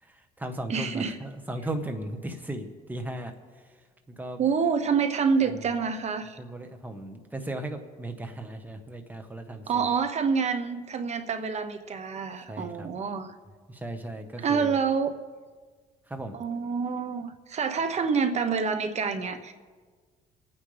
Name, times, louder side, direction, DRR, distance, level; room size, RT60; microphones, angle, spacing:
voice 1, 0.0-4.4 5.4-5.7 6.4-9.9 12.4-12.9 13.7-14.8 16.1-16.4, right 1 dB, 10° right, 5 dB, 1.4 m, -37 dB
voice 2, 0.7-1.2 4.4-6.4 9.7-13.3 14.4-15.1 16.3-19.5, right 5 dB, 40° right, 9 dB, 1.1 m, -27 dB
26.5 x 9.5 x 3.5 m, 1.5 s
cardioid pair, 110°, 17 cm